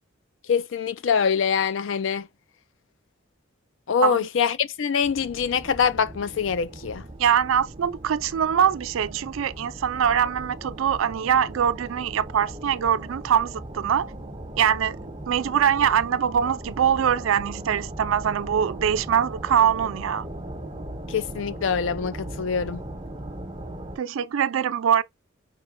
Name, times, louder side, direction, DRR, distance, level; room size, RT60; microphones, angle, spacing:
voice 1, 0.5-2.3 3.9-7.0 21.1-22.8, left 6 dB, 75° left, 0.4 m, -24 dB
sound 1, 5.0-24.0, right 1 dB, 25° right, 1.3 m, -38 dB
voice 2, 7.2-14.1 14.6-20.3 24.0-25.0, right 8 dB, 85° right, 0.4 m, -23 dB
5.6 x 2.2 x 3.6 m
head